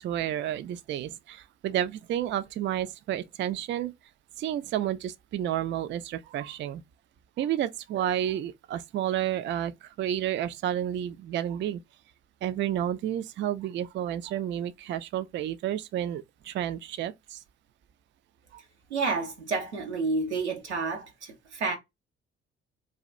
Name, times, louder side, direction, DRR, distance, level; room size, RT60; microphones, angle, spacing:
voice 1, 0.0-3.9 4.4-6.8 7.4-11.8 12.4-17.4 18.5-18.6, right 11 dB, 35° right, 0.4 m, -31 dB
voice 2, 18.9-21.8, right 4 dB, 90° right, 0.6 m, -30 dB
2.6 x 2.3 x 3.0 m
figure-of-eight pair, 40°, 33 cm